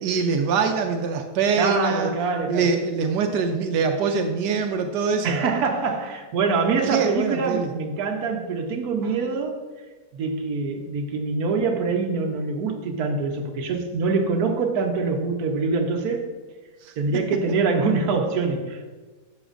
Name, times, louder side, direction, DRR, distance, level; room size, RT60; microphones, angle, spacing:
voice 1, 0.0-2.1 2.5-5.4 6.8-7.7 16.8-16.9, right 5 dB, 85° right, 1.2 m, -23 dB
voice 2, 1.6-2.7 5.2-9.6 10.1-16.3 17.0-18.9, right 4 dB, 70° right, 1.4 m, -24 dB
11.5 x 7.1 x 2.5 m
omnidirectional pair, 1.7 m